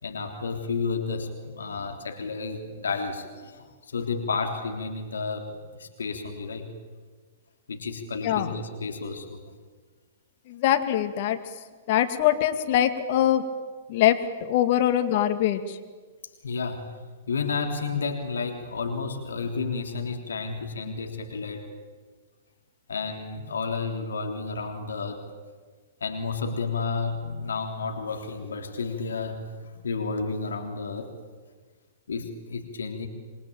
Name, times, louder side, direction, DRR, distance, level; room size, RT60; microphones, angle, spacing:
voice 1, 0.0-6.7 7.7-9.4 16.4-16.9 17.3-21.7 22.9-25.3 26.0-31.1 32.1-33.1, left 4 dB, 75° left, 4 dB, 3.4 m, -31 dB
voice 2, 8.2-8.5 10.5-11.4 11.9-13.5 13.9-15.8, left 11 dB, 45° left, 7 dB, 2.4 m, -23 dB
27.5 x 23.0 x 9.0 m, 1.5 s
figure-of-eight pair, 110°, 0 cm